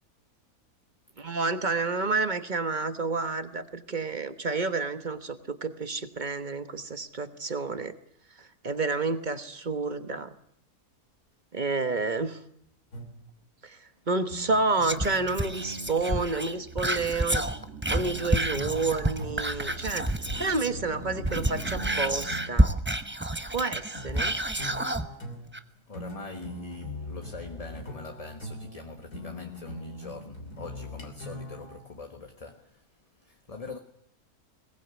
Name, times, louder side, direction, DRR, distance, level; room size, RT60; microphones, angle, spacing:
voice 1, 1.2-7.9 8.4-10.3 11.5-12.4 13.6-13.8 14.1-17.5 17.9-20.1 20.4-22.7 23.5-24.4, right 3 dB, 30° right, 1.2 m, -30 dB
sound 1, 12.9-13.4 14.3-16.4 17.9-19.7 21.0-22.6 23.9-31.8, equal, 75° left, 3.6 m, -41 dB
Whispering, 14.8-20.8 21.1-25.1 25.5-25.6, right 1 dB, 10° right, 0.7 m, -29 dB
sound 2, 16.2-22.6, right 2 dB, 50° right, 2.3 m, -42 dB
voice 2, 25.9-32.8 33.2-33.8, left 3 dB, 25° left, 1.2 m, -43 dB
21.5 x 19.0 x 8.3 m
omnidirectional pair, 1.7 m